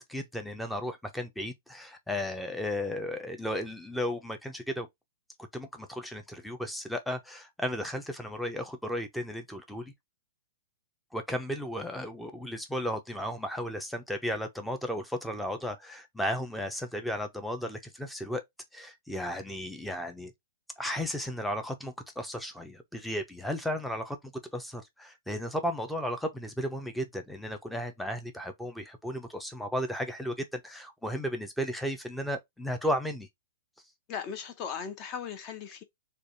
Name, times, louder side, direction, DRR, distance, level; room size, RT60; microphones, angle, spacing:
voice 1, 0.0-4.9 5.5-9.9 11.1-18.4 18.7-20.3 20.8-33.3, equal, ahead, 0.7 m, -34 dB
voice 2, 34.1-35.8, left 7 dB, 30° left, 0.9 m, -37 dB
3.3 x 2.4 x 4.0 m
hypercardioid pair, 145°, 0 cm